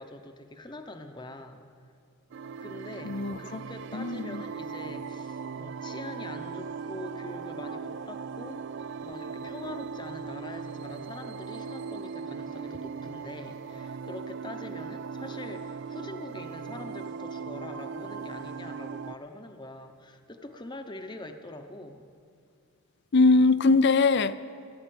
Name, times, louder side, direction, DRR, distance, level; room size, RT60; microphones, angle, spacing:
voice 1, 0.0-1.6 2.6-8.7 9.0-22.1, left 2 dB, 20° left, 6 dB, 0.8 m, -43 dB
sound 1, 2.3-19.2, right 5 dB, 55° right, 0.3 m, -38 dB
voice 2, 3.0-3.6 3.9-4.4 23.1-24.3, left 3 dB, 50° left, 15 dB, 0.5 m, -22 dB
16.0 x 9.5 x 9.3 m, 2.3 s
head